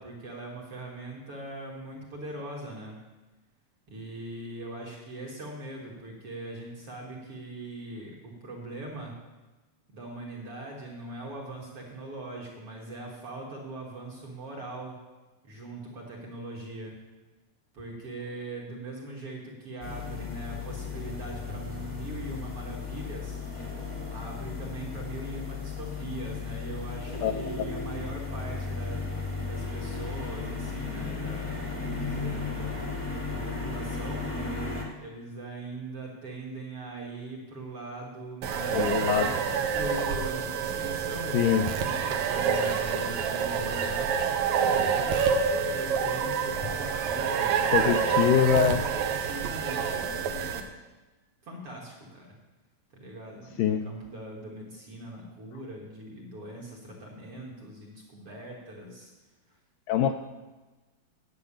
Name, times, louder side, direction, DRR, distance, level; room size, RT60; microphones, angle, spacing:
voice 1, 0.0-3.0 3.9-9.1 9.9-15.0 15.4-17.0 17.7-23.4 24.1-29.1 29.4-32.9 33.3-34.3 35.0-44.2 44.6-50.7 51.4-52.3 52.9-59.1 59.5-59.6, right 2 dB, 50° right, -2 dB, 1.9 m, -41 dB
sound 1, 19.8-34.8, left 4 dB, 20° left, 0.7 m, -35 dB
sound 2, 38.4-50.6, right 6 dB, 75° right, 1.7 m, -27 dB
voice 2, 38.7-39.3 41.3-41.7 47.7-48.8 53.6-53.8 59.9-60.1, left 9 dB, 80° left, 6 dB, 2.0 m, -23 dB
9.5 x 7.7 x 8.5 m, 1.2 s
omnidirectional pair, 4.4 m